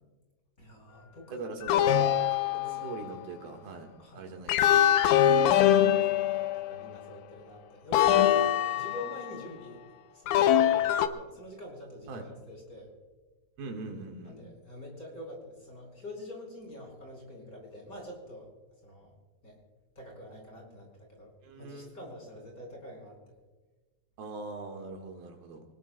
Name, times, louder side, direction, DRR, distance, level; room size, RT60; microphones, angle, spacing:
voice 1, 0.6-2.2 2.5-3.0 4.0-4.3 5.5-6.2 6.7-9.8 10.1-12.9 14.2-18.5 18.8-19.1 19.4-19.6 19.9-23.3, left 1 dB, 20° left, 0 dB, 4.8 m, -46 dB
voice 2, 1.3-1.9 2.6-3.9 4.1-5.1 12.1-12.2 13.6-14.4 21.4-21.9 24.2-25.6, right 3 dB, 70° right, 3 dB, 3.3 m, -42 dB
sound 1, 1.7-3.1 4.5-6.9 7.9-9.3 10.3-11.1, left 10 dB, 85° left, 1.9 m, -23 dB
25.0 x 20.0 x 2.3 m, 1.3 s
omnidirectional pair, 4.7 m